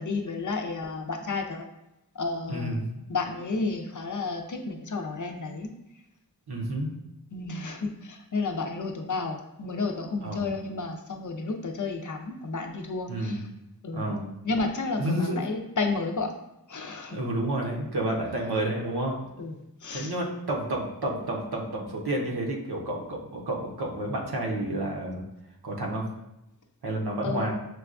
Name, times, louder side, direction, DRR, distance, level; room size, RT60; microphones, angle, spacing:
voice 1, 0.0-1.6 2.1-2.8 3.1-5.7 7.3-13.5 13.8-14.1 14.4-16.3 16.7-17.2 19.4-20.1 27.2-27.5, left 3 dB, 55° left, 4 dB, 0.5 m, -31 dB
voice 2, 2.5-3.0 6.5-6.9 10.2-10.5 13.1-13.4 13.9-14.3 15.0-15.4 17.1-19.3 19.9-25.2 25.6-26.1 26.8-27.5, right 1 dB, 85° right, -1 dB, 0.8 m, -30 dB
6.0 x 2.3 x 2.5 m, 0.90 s
wide cardioid pair, 55°, 38 cm